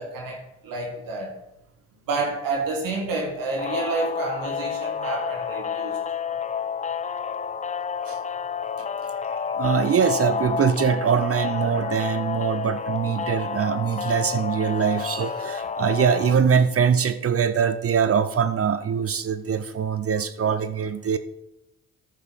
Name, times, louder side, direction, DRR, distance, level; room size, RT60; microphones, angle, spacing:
voice 1, 0.0-1.3 2.1-6.0, right 3 dB, 75° right, 1 dB, 1.7 m, -29 dB
sound 1, 3.6-16.3, left 6 dB, 20° left, 0.4 m, -29 dB
voice 2, 9.6-21.2, right 7 dB, 45° right, 12 dB, 0.7 m, -23 dB
9.5 x 5.3 x 5.6 m, 0.87 s
supercardioid pair, 50°, 34 cm